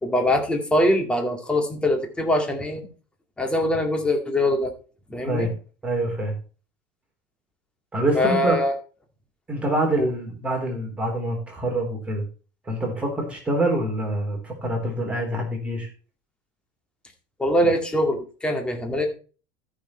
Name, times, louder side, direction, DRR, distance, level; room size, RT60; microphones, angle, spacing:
voice 1, 0.0-2.9 3.4-4.7 5.1-5.5 8.1-8.7 10.0-10.1 17.4-19.1, left 1 dB, 10° left, 3 dB, 2.2 m, -23 dB
voice 2, 5.8-6.3 7.9-8.6 9.5-12.2 12.7-15.9, right 1 dB, 10° right, 1 dB, 3.9 m, -25 dB
13.5 x 6.5 x 4.4 m, 0.37 s
supercardioid pair, 135°, 10 cm